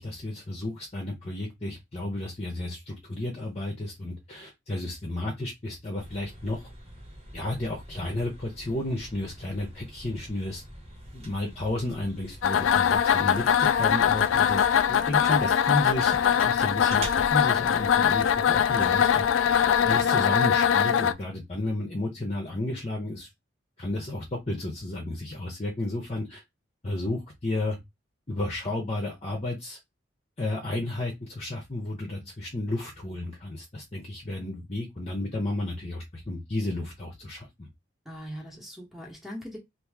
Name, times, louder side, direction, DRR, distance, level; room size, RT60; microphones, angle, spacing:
voice 1, 0.0-6.7 7.3-10.6 11.1-23.3 23.8-26.4 26.8-27.8 28.3-29.8 30.4-37.7, left 1 dB, 35° left, 0.8 m, -32 dB
sound 1, 6.0-20.0, right 1 dB, 35° right, 1.2 m, -44 dB
sound 2, 12.4-21.1, left 8 dB, 85° left, 0.3 m, -22 dB
voice 2, 38.1-39.6, equal, ahead, 1.1 m, -43 dB
2.9 x 2.6 x 3.6 m
head